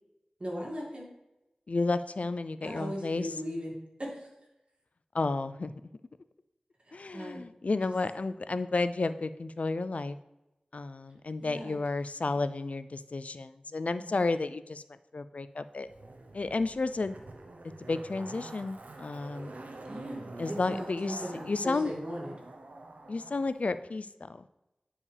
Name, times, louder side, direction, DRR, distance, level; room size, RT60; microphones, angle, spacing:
voice 1, 0.4-1.1 2.6-4.3 6.9-7.4 7.9-8.0 11.4-11.8 14.0-14.2 19.8-22.3, equal, 50° right, -3 dB, 2.2 m, -38 dB
voice 2, 1.7-3.3 5.1-5.7 6.9-10.2 10.7-14.8 15.1-15.9 16.3-17.2 17.9-19.5 20.4-21.9 23.1-24.5, left 3 dB, 65° left, 13 dB, 0.3 m, -32 dB
Zipper (clothing), 15.9-23.5 23.8-23.9, right 2 dB, 85° right, 0.8 m, -46 dB
9.7 x 4.8 x 3.3 m, 0.95 s
wide cardioid pair, 45°, 2 cm